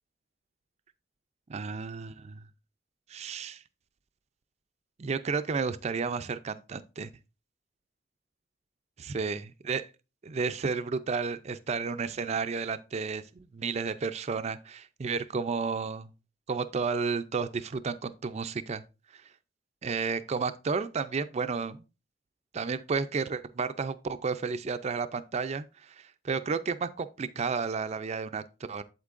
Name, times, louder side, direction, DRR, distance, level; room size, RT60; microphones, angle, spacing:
voice 1, 1.5-2.4 3.1-3.6 5.0-7.1 9.1-9.4 9.7-9.8 10.2-13.2 13.5-16.1 16.5-18.8 19.1-19.2 19.8-21.8 22.5-28.8, right 5 dB, 35° right, 0.4 m, -32 dB
8.2 x 7.9 x 2.5 m
head